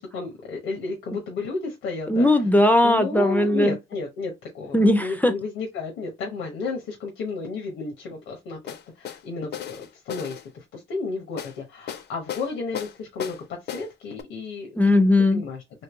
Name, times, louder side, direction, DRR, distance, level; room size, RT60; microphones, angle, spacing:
voice 1, 0.0-2.3 2.8-13.4 13.6-14.8 15.3-15.6, left 4 dB, 90° left, 0.9 m, -32 dB
voice 2, 2.1-3.8 4.7-5.3 14.8-15.4, left 1 dB, 10° left, 0.4 m, -18 dB
sound 1, 8.7-9.2 9.5-10.4 11.4-11.6 11.9-12.5 12.7-13.4 13.7-13.9 14.2-14.3, left 9 dB, 55° left, 0.5 m, -34 dB
3.2 x 2.7 x 3.0 m
cardioid pair, 90°, 20 cm